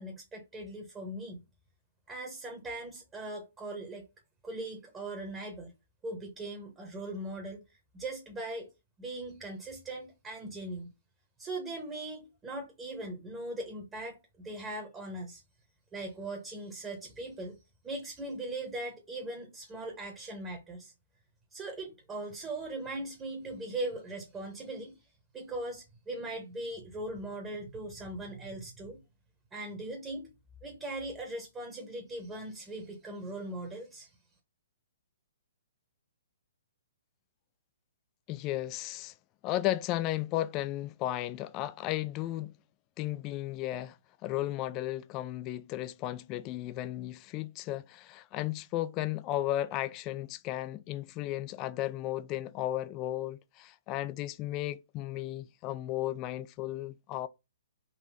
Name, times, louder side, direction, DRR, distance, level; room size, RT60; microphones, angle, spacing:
voice 1, 0.0-1.4 2.1-4.0 4.4-5.7 6.0-8.7 9.0-10.9 11.4-15.4 15.9-17.6 17.8-20.9 21.5-25.0 25.3-29.0 29.5-30.3 30.6-34.1, right 2 dB, 15° right, 1.0 m, -40 dB
voice 2, 38.3-39.1 39.4-42.5 43.0-44.0 44.2-57.3, left 14 dB, 30° left, 0.3 m, -34 dB
4.0 x 2.6 x 4.6 m
figure-of-eight pair, 125°, 0 cm